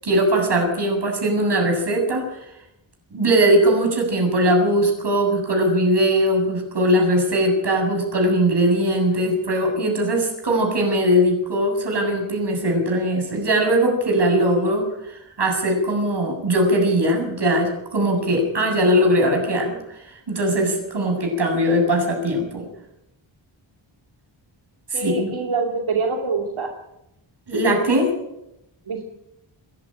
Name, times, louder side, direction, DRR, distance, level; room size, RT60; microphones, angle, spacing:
voice 1, 0.0-2.2 3.1-22.7 24.9-25.4 27.5-28.1, right 1 dB, 55° right, 3 dB, 7.8 m, -20 dB
voice 2, 24.9-26.7 28.9-29.0, right 4 dB, 90° right, 2 dB, 2.6 m, -25 dB
28.0 x 11.5 x 9.1 m, 0.87 s
wide cardioid pair, 125°, 47 cm